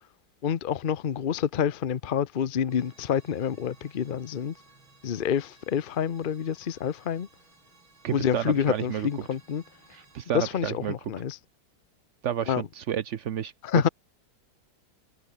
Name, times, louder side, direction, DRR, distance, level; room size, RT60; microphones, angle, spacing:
voice 1, 0.4-4.5 5.0-7.3 8.1-9.6 10.3-11.4 12.5-12.6 13.6-13.9, left 8 dB, 85° left, 0.4 m, -28 dB
sound 1, 2.7-10.3, right 3 dB, 80° right, 6.3 m, -58 dB
voice 2, 8.0-9.1 9.9-10.9 12.2-13.5, right 9 dB, 60° right, 0.8 m, -31 dB
omnidirectional pair, 2.2 m